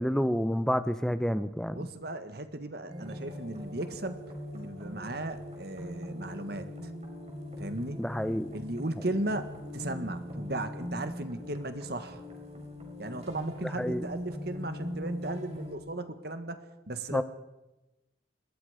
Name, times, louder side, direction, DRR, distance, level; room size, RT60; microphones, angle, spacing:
voice 1, 0.0-1.8 8.0-8.5 13.8-14.1 17.1-17.2, equal, 5° left, 12 dB, 0.8 m, -29 dB
voice 2, 1.7-6.9 7.6-8.0 8.5-12.2 13.0-17.2, right 1 dB, 55° right, 9 dB, 1.6 m, -36 dB
sound 1, 2.9-15.7, left 1 dB, 35° right, 5.0 m, -41 dB
26.5 x 21.5 x 5.1 m, 1.0 s
head